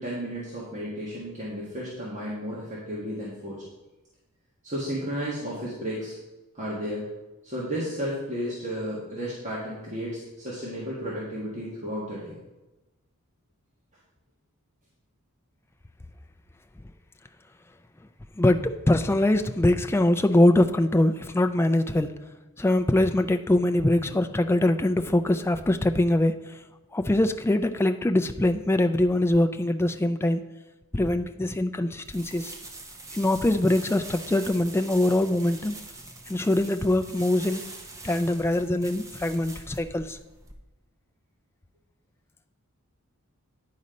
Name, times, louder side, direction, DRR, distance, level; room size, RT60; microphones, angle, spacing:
voice 1, 0.0-3.6 4.6-6.2 6.5-7.0 7.4-12.4, equal, 35° right, -7 dB, 1.6 m, -33 dB
voice 2, 18.4-22.1 22.6-26.4 26.9-30.4 30.9-32.5 33.1-35.7 36.3-37.7 38.0-40.2, left 1 dB, 10° left, 7 dB, 0.3 m, -23 dB
sound 1, 32.0-40.5, right 2 dB, 15° right, 0.7 m, -43 dB
9.6 x 4.2 x 5.1 m, 1.1 s
head